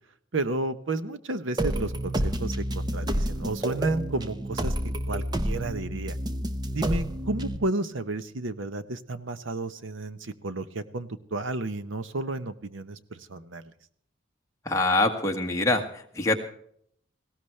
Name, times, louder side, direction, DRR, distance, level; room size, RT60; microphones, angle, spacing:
voice 1, 0.3-4.7 5.1-6.2 6.7-13.7, right 2 dB, 70° right, 12 dB, 1.0 m, -32 dB
sound 1, 1.6-7.6, right 1 dB, 20° right, 0.8 m, -29 dB
voice 2, 14.6-16.4, left 2 dB, 15° left, 2 dB, 1.6 m, -24 dB
19.0 x 16.5 x 3.3 m, 0.65 s
head